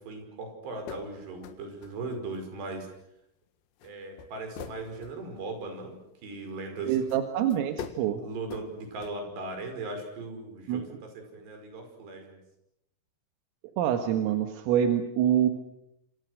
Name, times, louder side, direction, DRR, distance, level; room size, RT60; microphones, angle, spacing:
voice 1, 0.0-2.9 3.8-6.0 6.2-7.0 8.2-12.4, right 3 dB, 55° right, 5 dB, 7.4 m, -38 dB
sound 1, 0.9-1.1 1.4-2.7 2.9-3.0 3.8-3.9 4.2-5.8 7.1-7.2 7.5-8.0 8.4-8.7 9.0-9.1, left 8 dB, 65° left, 3.5 m, -42 dB
voice 2, 6.8-8.2 10.7-10.8 13.8-15.5, right 10 dB, 85° right, 6 dB, 4.2 m, -26 dB
28.0 x 27.0 x 6.5 m, 0.79 s
omnidirectional pair, 5.9 m